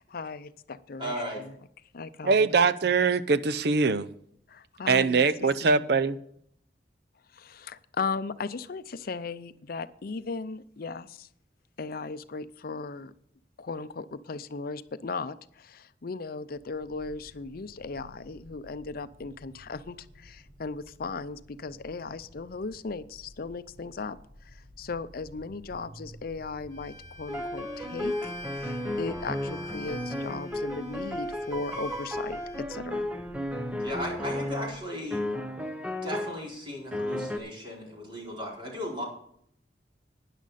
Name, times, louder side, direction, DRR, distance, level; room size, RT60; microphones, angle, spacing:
voice 1, 0.0-1.5 1.9-2.5 4.5-6.0 7.3-11.3 11.8-13.1 13.6-33.1, left 4 dB, 55° left, 0.6 m, -37 dB
voice 2, 1.0-1.4 33.8-35.2 36.0-39.0, equal, 30° right, 4.5 m, -36 dB
voice 3, 2.2-4.1 4.9-6.2, right 4 dB, 65° right, 0.6 m, -23 dB
sound 1, 16.5-34.8, equal, 85° right, 5.3 m, -53 dB
Bowed string instrument, 26.7-32.6, left 2 dB, 20° left, 2.6 m, -47 dB
sound 2, 27.3-34.8 35.1-36.4 36.9-37.4, left 1 dB, 5° right, 0.9 m, -33 dB
12.5 x 10.0 x 4.1 m
head